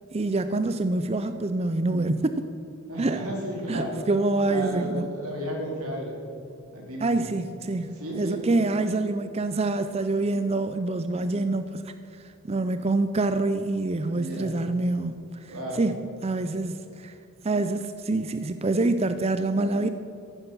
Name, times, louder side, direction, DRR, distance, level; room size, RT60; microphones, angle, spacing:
voice 1, 0.1-2.5 3.0-3.2 3.7-5.1 7.0-7.9 8.2-17.1 17.4-19.9, right 2 dB, 30° right, 10 dB, 0.4 m, -26 dB
voice 2, 2.9-4.1 4.5-6.2 6.7-7.3 7.9-8.5 14.1-14.5 15.5-15.9, equal, 85° right, -1 dB, 4.1 m, -33 dB
15.0 x 11.0 x 6.0 m, 2.7 s
head